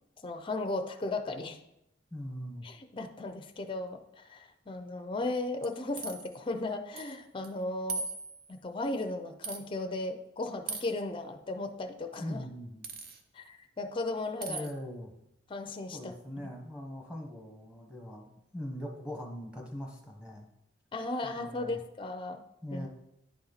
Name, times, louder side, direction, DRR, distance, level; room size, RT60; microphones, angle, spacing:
voice 1, 0.2-1.6 2.6-8.0 8.5-12.4 13.3-14.7 15.5-16.5 20.9-22.4 22.7-22.8, left 2 dB, 25° left, 6 dB, 0.5 m, -36 dB
voice 2, 2.1-2.7 12.2-12.9 14.5-15.1 15.9-20.5 21.2-21.8 22.6-22.9, equal, 5° right, 0 dB, 1.1 m, -41 dB
sound 1, 5.6-6.3 7.0-7.2 7.4-7.5 7.9-8.6 9.4-9.6 10.7-11.0 12.8-13.2 14.4-14.7, right 4 dB, 50° right, 0.6 m, -38 dB
10.5 x 4.2 x 4.0 m, 0.83 s
head